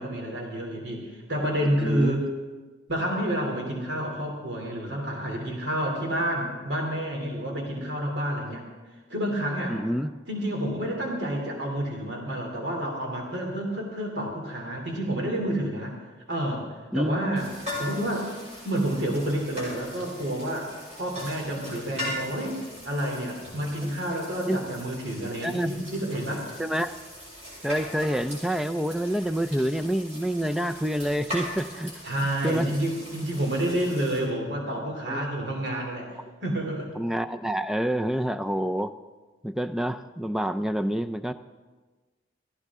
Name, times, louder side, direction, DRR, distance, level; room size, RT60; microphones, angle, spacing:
voice 1, 0.0-2.2 2.9-8.6 9.1-9.8 10.3-16.0 16.3-16.7 16.9-17.4 17.8-18.3 18.6-20.7 21.0-22.6 22.8-26.5 32.0-36.9, right 1 dB, 60° right, 0 dB, 3.0 m, -29 dB
voice 2, 1.6-2.1 9.7-10.1 16.9-17.2 23.8-24.0 24.5-24.6 25.4-25.7 26.6-26.9 27.6-31.9 32.4-32.7 35.1-35.2 37.0-38.9 39.4-41.3, equal, ahead, 8 dB, 0.4 m, -27 dB
sound 1, 17.4-34.2, equal, 35° right, 5.4 m, -40 dB
18.5 x 14.5 x 3.7 m, 1.3 s
head